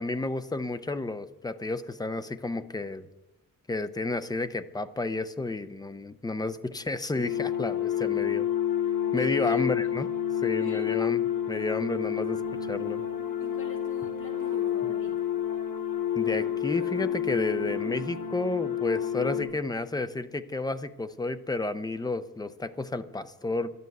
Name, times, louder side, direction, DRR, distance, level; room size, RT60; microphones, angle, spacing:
voice 1, 0.0-3.1 3.7-8.5 9.1-10.1 10.4-11.2 11.5-12.4 12.7-13.1 16.2-23.7, left 2 dB, 10° left, 11 dB, 0.5 m, -31 dB
sound 1, 7.1-19.4, left 10 dB, 80° left, 2.3 m, -29 dB
voice 2, 9.1-9.6 10.4-11.0 13.4-15.3, left 2 dB, 35° left, 0 dB, 2.3 m, -46 dB
sound 2, 12.3-13.9 14.2-15.4 16.2-17.3 17.6-18.3, right 5 dB, 55° right, 1.5 m, -49 dB
12.0 x 9.3 x 7.8 m, 1.0 s
wide cardioid pair, 165°, 34 cm